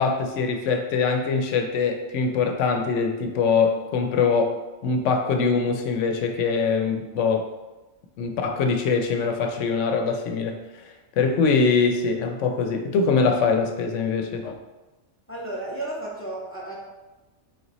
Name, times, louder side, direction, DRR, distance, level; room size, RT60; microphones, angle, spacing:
voice 1, 0.0-4.6 4.8-7.5 8.2-10.6 11.2-14.5, left 5 dB, 85° left, 5 dB, 0.9 m, -23 dB
voice 2, 15.3-16.8, right 2 dB, 15° left, -4 dB, 0.5 m, -33 dB
3.7 x 3.0 x 3.9 m, 1.1 s
omnidirectional pair, 1.2 m